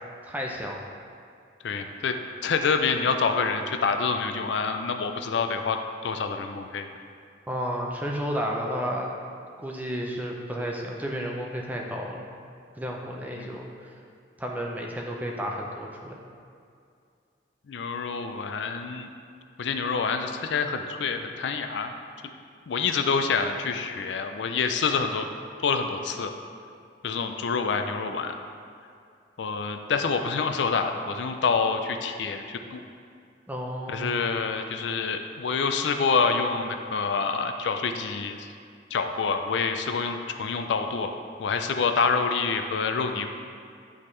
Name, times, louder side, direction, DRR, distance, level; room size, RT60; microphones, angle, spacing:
voice 1, 0.2-0.8 7.5-9.1 9.6-12.3 12.8-13.9 14.4-16.2 33.5-34.2, equal, 10° right, -1 dB, 0.5 m, -32 dB
voice 2, 1.6-2.2 2.4-6.9 13.4-13.6 17.7-19.1 19.6-21.9 22.7-25.3 25.6-26.3 27.0-28.4 29.4-32.8 33.9-38.5 38.9-43.3, left 5 dB, 80° left, 6 dB, 0.4 m, -27 dB
9.8 x 3.6 x 3.2 m, 2.4 s
head